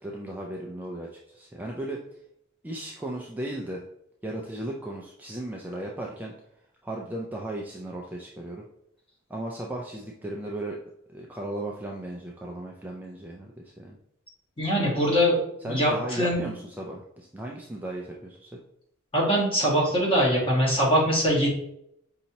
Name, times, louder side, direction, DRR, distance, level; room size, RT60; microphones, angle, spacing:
voice 1, 0.0-2.0 2.6-3.8 4.2-6.3 6.8-8.6 9.3-10.8 11.1-14.0 15.6-18.5, right 1 dB, 10° right, -2 dB, 0.3 m, -36 dB
voice 2, 14.6-16.5 19.1-21.5, equal, 25° left, -4 dB, 1.4 m, -23 dB
5.2 x 2.8 x 2.8 m, 0.75 s
head